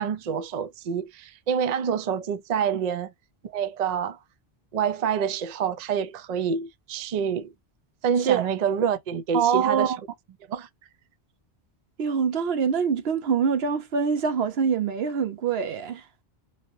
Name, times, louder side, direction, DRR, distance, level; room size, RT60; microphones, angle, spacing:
voice 1, 0.0-3.1 3.4-4.2 4.7-7.5 8.0-9.9 10.5-10.7, right 7 dB, 50° right, 0.5 m, -27 dB
voice 2, 9.3-10.0 12.0-16.0, right 7 dB, 75° right, 0.9 m, -24 dB
3.0 x 2.8 x 2.6 m
omnidirectional pair, 1.1 m